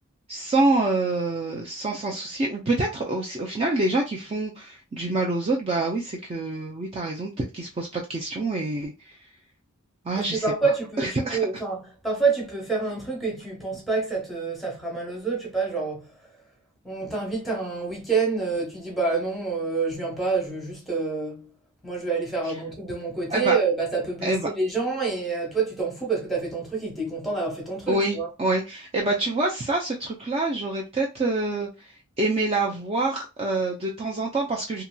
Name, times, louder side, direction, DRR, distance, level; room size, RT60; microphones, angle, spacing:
voice 1, 0.3-8.9 10.1-10.4 11.0-11.4 23.3-23.6 24.2-24.5 27.9-31.7 32.2-34.8, right 2 dB, 25° right, 0.4 m, -26 dB
voice 2, 10.2-16.0 16.8-21.5 21.8-28.3, right 4 dB, ahead, 1.0 m, -27 dB
2.8 x 2.8 x 2.2 m
head